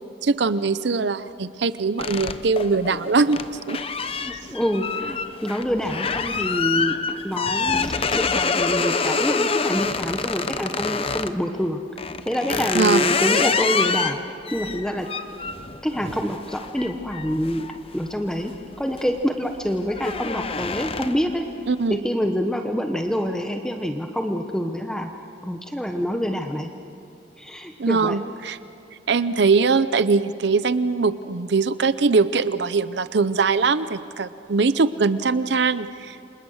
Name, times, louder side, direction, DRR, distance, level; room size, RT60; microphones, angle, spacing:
voice 1, 0.2-3.8 12.7-13.1 21.7-22.0 27.8-28.6 29.1-36.3, right 4 dB, 70° right, 14 dB, 0.6 m, -21 dB
sound 1, 2.0-11.4 12.0-18.4 18.8-19.2 19.5-21.3, left 5 dB, 30° left, 0.7 m, -26 dB
voice 2, 4.2-7.0 7.2-11.8 12.3-14.2 14.5-15.1 15.8-17.7 17.9-21.5 21.9-25.1 25.4-26.7 27.4-28.2, equal, 5° left, 4 dB, 1.0 m, -26 dB
29.0 x 26.5 x 6.4 m, 2.6 s
head